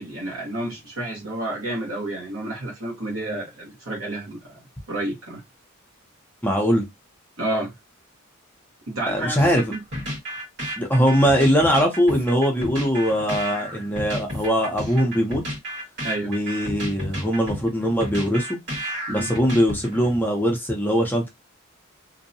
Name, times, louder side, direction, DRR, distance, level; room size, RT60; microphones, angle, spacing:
voice 1, 0.0-4.6 4.9-5.4 7.4-7.7 8.9-9.8 16.0-16.3 19.1-19.3, right 1 dB, 70° right, 1.0 m, -30 dB
voice 2, 6.4-6.8 9.1-9.6 10.8-15.4 16.2-18.5 19.1-21.3, equal, 10° left, 0.6 m, -21 dB
sound 1, 9.4-20.2, equal, 55° right, 1.5 m, -32 dB
2.6 x 2.1 x 2.6 m
head